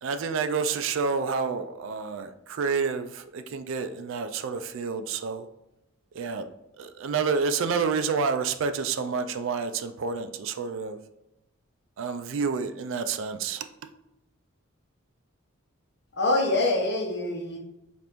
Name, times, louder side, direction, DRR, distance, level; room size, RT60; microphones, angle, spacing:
voice 1, 0.0-5.5 6.1-6.5 6.8-11.0 12.0-13.7, right 5 dB, 70° right, 9 dB, 0.3 m, -29 dB
voice 2, 16.1-17.6, left 2 dB, 55° left, 1 dB, 0.8 m, -25 dB
5.1 x 2.5 x 3.0 m, 0.91 s
head